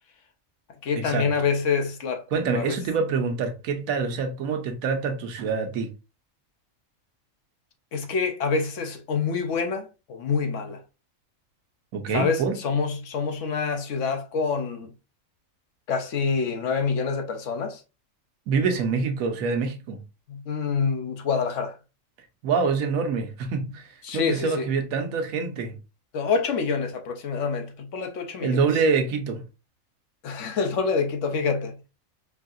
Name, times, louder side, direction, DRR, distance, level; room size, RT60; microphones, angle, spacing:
voice 1, 0.8-2.2 2.5-2.8 7.9-10.8 12.1-14.9 15.9-17.8 20.3-21.8 24.0-24.7 26.1-28.6 30.2-31.8, left 5 dB, 65° left, 1.0 m, -26 dB
voice 2, 2.3-5.9 11.9-12.6 18.5-20.0 22.4-25.7 28.4-29.4, right 5 dB, 90° right, 1.2 m, -26 dB
4.8 x 2.7 x 2.4 m
omnidirectional pair, 1.4 m